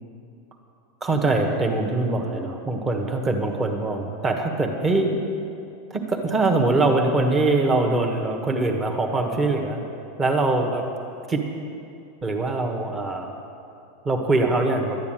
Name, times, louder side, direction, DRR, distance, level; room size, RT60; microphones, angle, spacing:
voice 1, 1.0-5.2 5.9-9.9 10.2-10.8 11.3-11.4 12.2-13.3 14.0-15.0, right 2 dB, 15° right, 3 dB, 1.4 m, -23 dB
12.0 x 9.4 x 9.1 m, 2.6 s
supercardioid pair, 150°, 0 cm